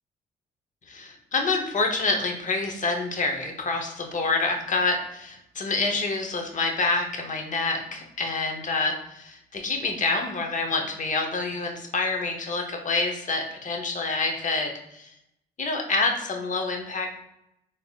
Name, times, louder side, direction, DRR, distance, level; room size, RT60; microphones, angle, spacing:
voice 1, 0.9-15.1 15.6-17.1, left 3 dB, 45° left, 3 dB, 0.8 m, -27 dB
3.5 x 3.4 x 2.3 m, 0.82 s
supercardioid pair, 65°, 18 cm